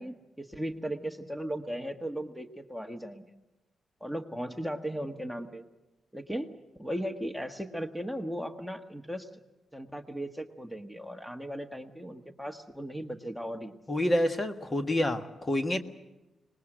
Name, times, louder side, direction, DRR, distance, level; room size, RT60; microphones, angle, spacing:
voice 1, 0.0-3.2 4.0-5.6 6.1-6.5 6.8-9.3 9.7-13.8, equal, ahead, 7 dB, 1.5 m, -37 dB
voice 2, 13.9-15.8, left 1 dB, 30° left, 7 dB, 1.6 m, -28 dB
25.0 x 20.5 x 7.9 m, 1.0 s
cardioid pair, 90°, 0 cm